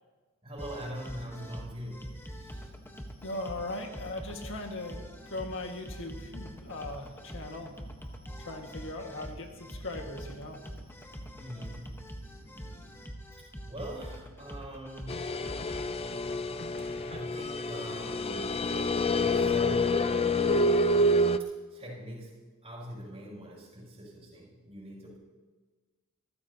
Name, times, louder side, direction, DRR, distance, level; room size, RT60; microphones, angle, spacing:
voice 1, 0.4-2.7 11.4-12.0 13.7-15.3 17.1-18.7 19.1-20.9 21.4-25.2, equal, 25° right, -5 dB, 6.6 m, -43 dB
sound 1, 0.6-15.9, equal, 10° left, 1.2 m, -44 dB
voice 2, 3.2-7.8 8.4-10.7, left 2 dB, 60° left, 3 dB, 1.9 m, -39 dB
sound 2, 12.4-13.0 15.1-17.8, left 2 dB, 45° left, 0.8 m, -50 dB
sound 3, 15.1-21.4, left 1 dB, 25° left, 0.4 m, -27 dB
28.5 x 14.5 x 2.9 m, 1.3 s
head